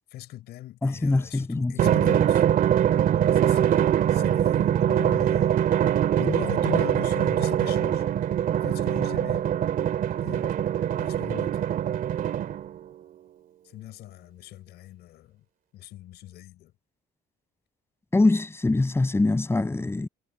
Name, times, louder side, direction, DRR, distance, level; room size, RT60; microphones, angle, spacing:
voice 1, 0.1-2.4 2.7-5.5 6.2-8.0 8.6-9.5 10.2-10.5 11.0-11.6 13.6-15.4 15.7-16.7, left 14 dB, 75° left, 6.4 m, -40 dB
voice 2, 0.8-1.9 18.1-20.1, left 2 dB, 15° left, 6.7 m, -23 dB
Drum, 1.8-12.8, right 10 dB, 55° right, 2.3 m, -23 dB
cardioid pair, 110°, 17 cm